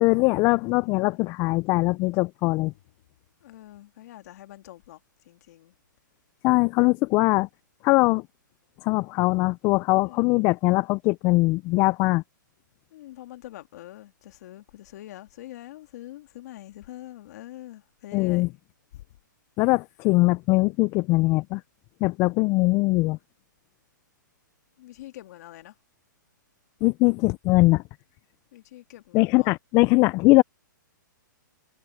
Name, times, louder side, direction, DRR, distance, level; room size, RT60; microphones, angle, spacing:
voice 1, 0.0-2.7 6.4-7.5 7.8-8.2 8.8-12.2 18.1-18.5 19.6-21.6 22.0-23.2 26.8-27.8 29.1-30.4, left 23 dB, 25° left, 0.3 m, -21 dB
voice 2, 0.8-1.3 3.4-5.0 5.3-5.7 9.9-10.5 12.9-18.5 18.9-19.0 24.8-25.8 28.5-29.5, left 15 dB, 55° left, 2.3 m, -44 dB
hypercardioid pair, 145°, 11 cm